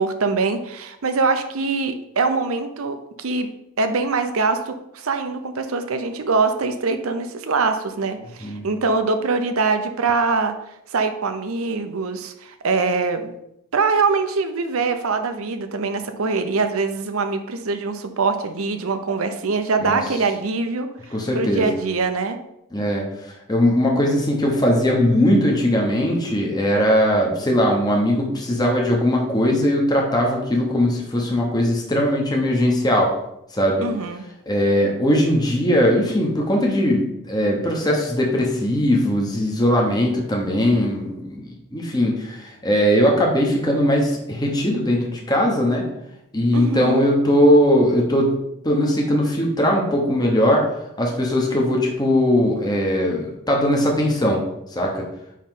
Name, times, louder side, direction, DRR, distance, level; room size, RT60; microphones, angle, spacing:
voice 1, 0.0-3.5 3.8-10.5 10.9-13.3 13.7-20.9 21.3-22.4 33.8-34.2 46.5-47.1, right 4 dB, 65° right, 7 dB, 0.7 m, -23 dB
voice 2, 21.1-21.7 22.7-23.0 23.5-33.1 33.5-33.8 34.5-45.9 46.3-48.4 48.6-50.7 51.0-54.4 54.7-55.1, equal, 20° left, -1 dB, 1.0 m, -19 dB
9.3 x 3.1 x 3.9 m, 0.81 s
head